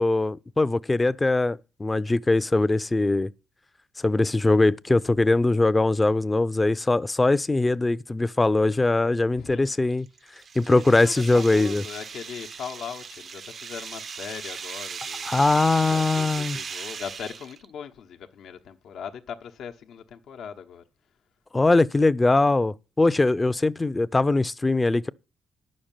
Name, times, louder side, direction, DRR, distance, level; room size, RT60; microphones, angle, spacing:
voice 1, 0.0-3.3 4.0-10.1 10.6-11.8 15.2-16.6 21.5-25.1, left 2 dB, 20° left, 0.5 m, -21 dB
sound 1, 9.9-17.6, right 6 dB, 55° right, 0.5 m, -37 dB
voice 2, 10.8-15.3 15.9-20.8, left 7 dB, 80° left, 1.0 m, -39 dB
9.8 x 6.5 x 8.9 m
cardioid pair, 80°, 0 cm